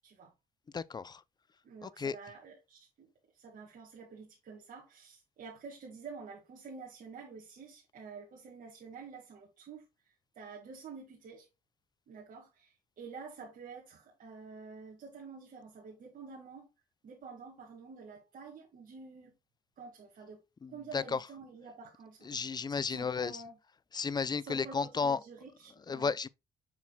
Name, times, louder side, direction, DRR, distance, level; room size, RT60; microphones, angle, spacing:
voice 1, 0.7-1.2 1.8-2.2 20.6-21.3 22.2-23.4 23.9-25.2 25.9-26.3, left 5 dB, 25° left, 0.5 m, -33 dB
voice 2, 1.6-3.1 3.3-11.5 12.1-16.7 17.0-19.3 19.8-22.6 22.9-23.6 24.4-26.2, right 5 dB, 60° right, 2.2 m, -49 dB
7.2 x 6.2 x 2.3 m
cardioid pair, 85°, 15 cm